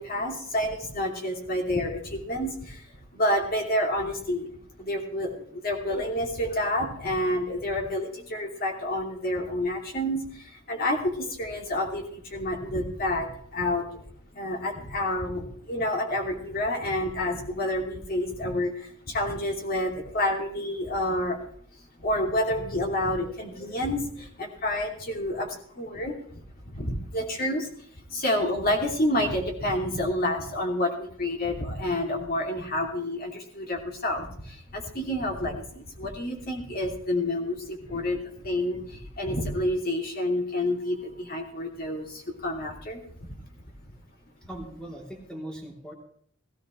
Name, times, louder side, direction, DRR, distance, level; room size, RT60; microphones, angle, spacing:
voice 1, 0.0-14.1 14.3-21.4 21.8-26.4 26.7-43.4, left 1 dB, 45° left, 1 dB, 2.7 m, -29 dB
voice 2, 44.5-45.9, right 1 dB, 5° left, -1 dB, 3.1 m, -39 dB
17.0 x 15.0 x 3.2 m, 0.62 s
head